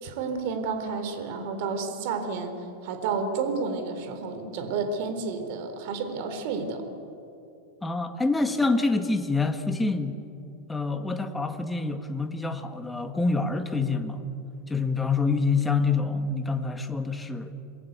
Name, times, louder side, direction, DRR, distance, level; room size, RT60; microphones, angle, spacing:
voice 1, 0.0-2.5 2.8-6.8, right 4 dB, 55° right, 7 dB, 3.8 m, -30 dB
voice 2, 7.8-10.2 10.7-14.2 14.7-17.5, left 3 dB, 10° left, 6 dB, 1.7 m, -26 dB
29.0 x 21.5 x 8.3 m, 2.7 s
supercardioid pair, 145°, 0 cm